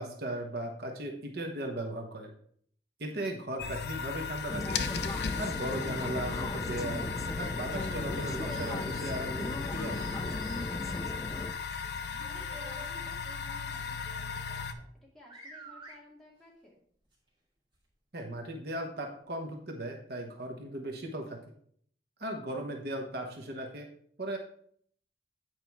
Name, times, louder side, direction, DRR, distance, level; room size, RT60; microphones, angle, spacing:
voice 1, 0.0-2.3 3.0-4.8 5.4-10.2 18.1-21.4 22.2-23.9 24.2-24.4, right 1 dB, 55° right, 2 dB, 1.0 m, -37 dB
sound 1, 3.6-14.7, left 6 dB, 60° left, 0.6 m, -37 dB
sound 2, 4.5-11.5, left 2 dB, 20° left, 0.4 m, -37 dB
sound 3, 8.1-11.1 12.2-13.2 14.9-15.0 15.3-15.9 17.1-17.2 17.7-17.8 18.6-18.7, right 2 dB, 25° right, 2.8 m, -52 dB
voice 2, 11.1-14.9 15.1-16.7 22.5-22.7, equal, ahead, -4 dB, 2.2 m, -56 dB
9.0 x 4.9 x 4.6 m, 0.62 s
head